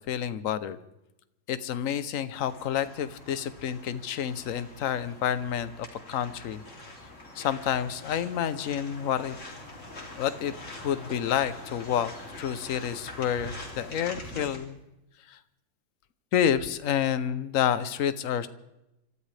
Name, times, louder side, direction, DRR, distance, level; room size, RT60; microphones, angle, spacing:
voice 1, 0.1-0.8 1.5-6.6 7.3-9.4 10.2-10.5 10.8-12.1 12.4-14.8 15.3-15.4 16.3-18.5, left 9 dB, 55° left, 13 dB, 1.0 m, -29 dB
sound 1, 2.3-14.6, left 2 dB, 40° left, 3.2 m, -44 dB
26.0 x 14.0 x 3.4 m, 0.91 s
omnidirectional pair, 2.0 m